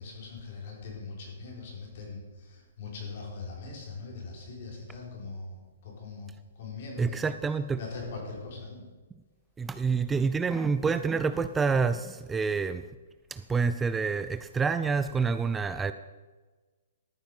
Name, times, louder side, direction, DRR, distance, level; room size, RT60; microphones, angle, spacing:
voice 1, 0.0-7.3 7.7-8.8, left 4 dB, 55° left, -1 dB, 4.3 m, -41 dB
voice 2, 7.0-7.8 9.6-12.8 13.3-15.9, right 5 dB, 10° right, 11 dB, 0.3 m, -27 dB
13.5 x 7.1 x 5.4 m, 1.3 s
hypercardioid pair, 140°, 0 cm